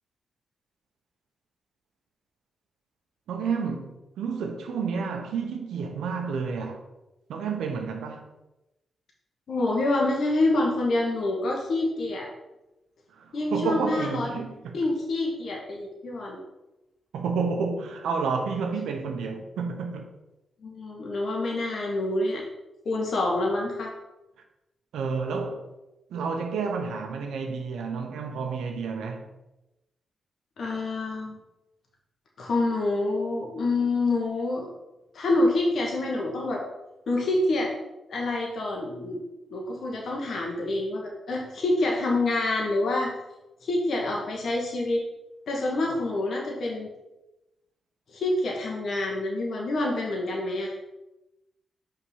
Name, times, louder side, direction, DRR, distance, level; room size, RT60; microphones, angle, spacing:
voice 1, 3.3-6.8 7.3-8.3 13.1-14.8 17.1-20.1 24.9-25.6 26.1-29.3, right 5 dB, 80° right, 0.9 m, -30 dB
voice 2, 9.5-12.3 13.3-14.3 14.7-16.4 20.6-22.4 22.8-23.9 30.6-31.4 32.4-34.7 35.1-36.6 37.1-37.7 38.1-39.2 39.5-43.1 43.6-45.0 45.5-46.9 48.1-50.7, left 2 dB, 65° left, 1.3 m, -27 dB
5.5 x 3.8 x 5.6 m
supercardioid pair, 40°, 0 cm